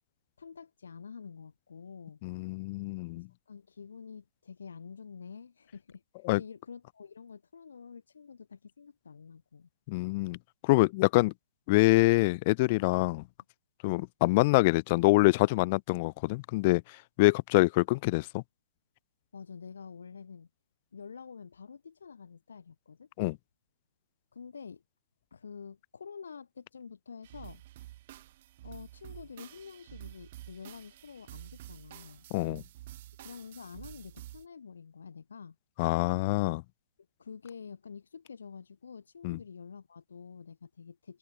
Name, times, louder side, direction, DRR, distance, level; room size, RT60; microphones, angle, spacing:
voice 1, 0.4-2.2 3.1-6.0 6.3-9.7 19.3-20.5 20.9-23.1 24.3-24.8 25.3-27.6 28.6-32.3 33.2-35.6 37.2-41.2, left 6 dB, 70° left, 5.8 m, -47 dB
voice 2, 2.2-3.3 6.3-6.4 9.9-10.4 10.6-11.3 11.7-13.2 13.8-16.8 17.2-18.4 23.2-23.4 32.3-32.6 35.8-36.6 39.2-39.4, left 23 dB, 35° left, 0.6 m, -25 dB
sound 1, 27.2-34.5, right 15 dB, 45° right, 6.6 m, -49 dB
open air
figure-of-eight pair, 125°, 0 cm